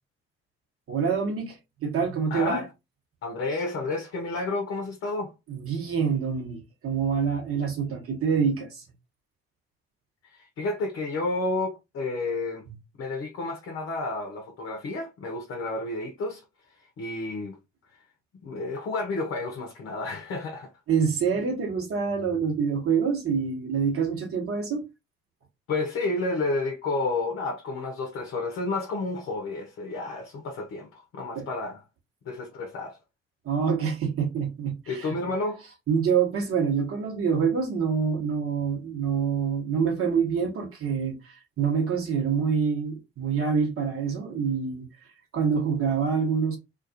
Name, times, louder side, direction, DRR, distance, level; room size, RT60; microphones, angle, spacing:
voice 1, 0.9-2.6 5.5-8.8 20.9-24.8 31.3-31.5 33.4-35.2 35.9-44.9 45.3-46.6, right 6 dB, 50° right, 1.2 m, -26 dB
voice 2, 2.3-2.7 3.2-5.3 10.2-12.7 13.0-16.4 17.0-17.6 18.4-20.7 25.7-31.8 32.2-33.0 34.9-35.6, left 3 dB, 50° left, 0.7 m, -31 dB
2.4 x 2.3 x 2.6 m
hypercardioid pair, 45°, 29 cm